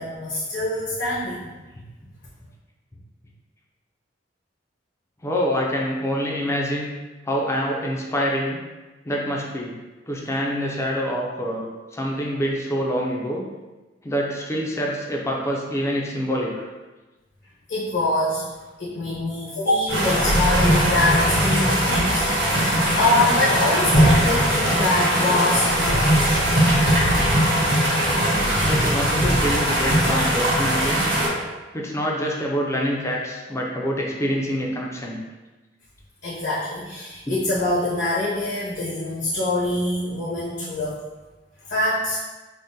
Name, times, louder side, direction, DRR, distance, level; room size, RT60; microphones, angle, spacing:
voice 1, 0.0-1.5 17.7-26.5 36.2-41.0 41.6-42.2, left 2 dB, 75° left, -9 dB, 0.8 m, -24 dB
voice 2, 5.2-6.9 7.3-8.6 9.0-9.7 10.1-13.5 14.0-16.7 28.6-31.0 31.7-35.2 37.3-37.4, equal, 15° left, -1 dB, 0.4 m, -26 dB
sound 1, 19.9-31.3, equal, 65° right, 1.1 m, -20 dB
3.5 x 2.1 x 2.7 m, 1.2 s
head